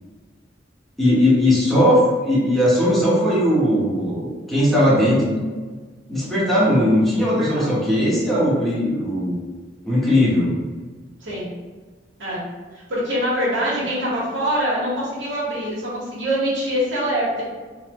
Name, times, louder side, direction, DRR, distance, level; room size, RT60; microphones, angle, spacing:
voice 1, 1.0-5.4 6.1-9.4 9.8-10.5, left 1 dB, ahead, -9 dB, 1.3 m, -18 dB
voice 2, 7.2-7.6 11.2-11.5 12.2-12.4 12.9-17.4, equal, 90° right, -8 dB, 1.4 m, -24 dB
4.0 x 2.8 x 3.0 m, 1.4 s
head